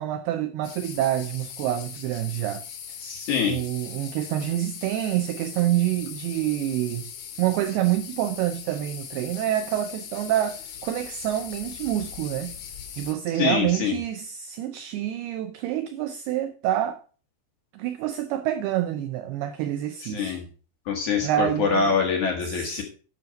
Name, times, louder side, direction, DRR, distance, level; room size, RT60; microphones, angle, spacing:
voice 1, 0.0-2.6 3.4-7.1 7.4-12.6 13.0-17.0 17.7-20.4 21.2-22.0 22.4-22.8, right 12 dB, 85° right, 2.3 m, -27 dB
sound 1, 0.6-13.1, left 8 dB, 80° left, 4.0 m, -40 dB
voice 2, 3.0-3.6 13.4-13.9 20.1-20.4 20.9-22.8, left 6 dB, 60° left, 2.3 m, -24 dB
10.5 x 6.3 x 5.2 m
omnidirectional pair, 5.2 m